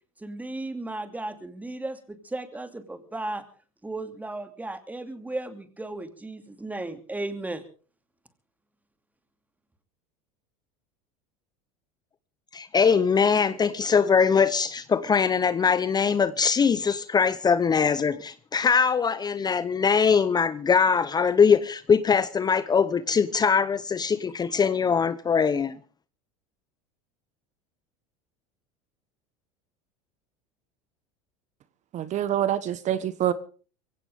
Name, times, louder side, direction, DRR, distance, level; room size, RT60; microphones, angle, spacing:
voice 1, 0.2-3.4 3.8-7.6, right 2 dB, 10° right, 2.6 m, -35 dB
voice 2, 12.5-25.8, left 6 dB, 25° left, 0.8 m, -22 dB
voice 3, 31.9-33.3, right 11 dB, 45° right, 1.2 m, -26 dB
23.0 x 16.5 x 3.6 m
hypercardioid pair, 95°, 18 cm